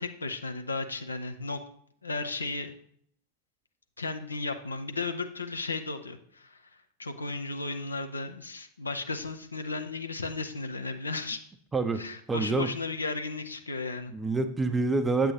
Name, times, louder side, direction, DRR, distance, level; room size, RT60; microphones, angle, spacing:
voice 1, 0.0-1.6 2.0-2.7 4.0-6.6 7.0-11.4 11.9-14.1, left 3 dB, 80° left, 6 dB, 0.7 m, -34 dB
voice 2, 11.7-12.7 14.1-15.3, right 3 dB, 10° right, 8 dB, 0.5 m, -27 dB
8.3 x 7.9 x 3.0 m, 0.63 s
figure-of-eight pair, 90°, 0 cm